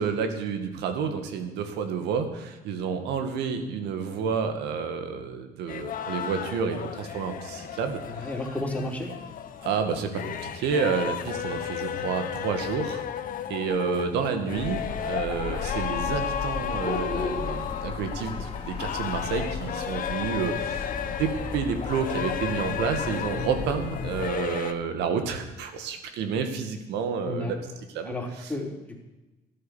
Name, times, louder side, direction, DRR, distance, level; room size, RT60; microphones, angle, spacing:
voice 1, 0.0-8.3 9.6-13.0 13.5-27.6 27.9-28.1 28.4-28.5, right 6 dB, 85° right, 7 dB, 2.1 m, -30 dB
sound 1, 5.7-24.7, left 9 dB, 55° left, 1.2 m, -34 dB
voice 2, 8.1-9.1 27.2-27.5 28.0-29.0, left 1 dB, 10° left, 0 dB, 3.6 m, -32 dB
sound 2, 14.5-24.3, left 5 dB, 35° left, 2.8 m, -34 dB
13.5 x 11.5 x 7.3 m, 1.1 s
cardioid pair, 110°, 17 cm